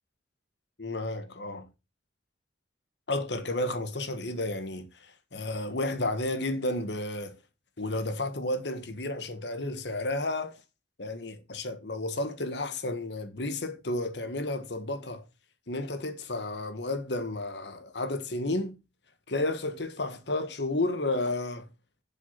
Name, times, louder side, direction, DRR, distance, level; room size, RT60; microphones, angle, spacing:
voice 1, 0.8-1.7 3.1-7.4 7.8-10.6 11.0-15.2 15.7-18.7 19.3-21.7, left 2 dB, 65° left, 1.4 m, -32 dB
7.8 x 6.0 x 5.8 m
head